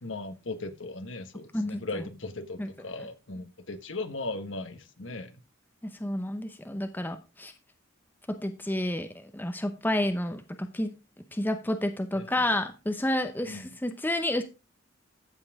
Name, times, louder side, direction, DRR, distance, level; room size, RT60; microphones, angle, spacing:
voice 1, 0.0-5.4 12.1-12.5 13.4-13.7, left 2 dB, 70° left, 1.3 m, -38 dB
voice 2, 1.5-2.0 2.6-2.7 5.8-7.5 8.3-11.0 11.3-14.4, left 1 dB, 10° left, 0.8 m, -30 dB
14.5 x 5.7 x 3.6 m
head